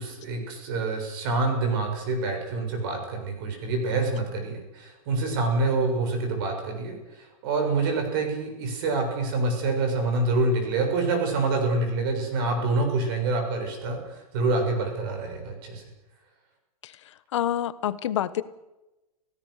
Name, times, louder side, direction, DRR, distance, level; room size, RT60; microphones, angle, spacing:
voice 1, 0.0-15.8, right 3 dB, 35° right, 4 dB, 6.9 m, -26 dB
voice 2, 16.8-18.4, left 11 dB, 50° left, 15 dB, 1.3 m, -28 dB
29.0 x 18.0 x 6.6 m, 1.0 s
supercardioid pair, 175°, 19 cm